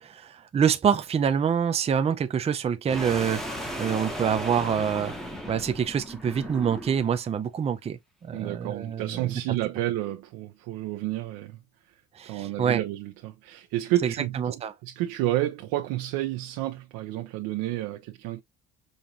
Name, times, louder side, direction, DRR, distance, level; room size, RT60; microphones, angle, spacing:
voice 1, 0.0-3.4 3.8-5.1 5.5-9.4 12.2-12.8 14.0-14.7, right 7 dB, 20° right, 0.4 m, -26 dB
sound 1, 2.9-7.2, equal, ahead, 1.0 m, -35 dB
voice 2, 8.3-11.6 12.3-18.4, right 15 dB, 90° right, 0.8 m, -30 dB
5.3 x 2.5 x 2.9 m
cardioid pair, 145°, 33 cm